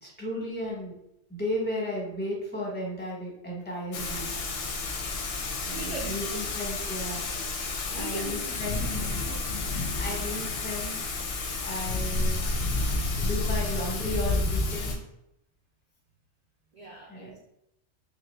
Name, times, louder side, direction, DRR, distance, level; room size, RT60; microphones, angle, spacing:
voice 1, 0.0-0.9 1.3-4.6 5.7-7.2 7.6-7.7 7.9-11.0 11.6-12.4 12.9-15.0 17.1-17.4, left 1 dB, 10° left, -4 dB, 0.8 m, -35 dB
Thunder / Rain, 3.9-15.0, left 3 dB, 65° left, 0.7 m, -30 dB
voice 2, 5.7-6.2 7.9-8.7 9.9-10.4 16.7-17.4, right 2 dB, 75° right, -3 dB, 0.3 m, -40 dB
3.0 x 2.2 x 3.2 m, 0.81 s
omnidirectional pair, 1.2 m